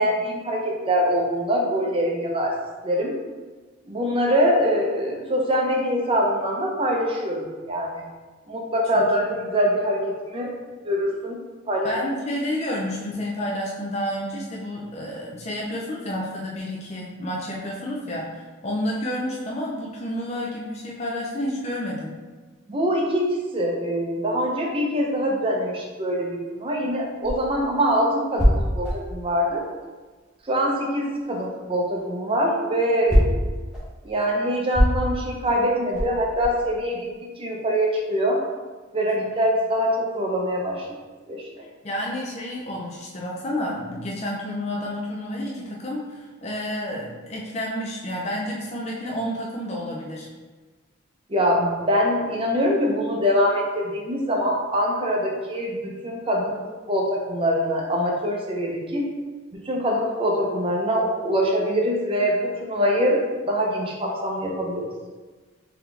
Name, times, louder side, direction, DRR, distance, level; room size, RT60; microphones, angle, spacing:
voice 1, 0.0-2.5 2.8-3.1 3.9-8.0 8.5-10.5 10.8-11.4 11.7-11.9 22.7-29.6 30.5-33.4 34.0-37.1 37.4-38.4 38.9-40.9 41.3-41.6 51.3-56.6 56.9-59.0 59.6-64.9, equal, 30° right, -1 dB, 0.6 m, -24 dB
voice 2, 11.8-22.1 39.2-39.3 41.8-50.3, left 1 dB, 35° left, -3 dB, 0.5 m, -30 dB
sound 1, 27.0-30.6 30.9-36.7, equal, 5° right, 0.8 m, -24 dB
4.0 x 2.8 x 3.3 m, 1.3 s
head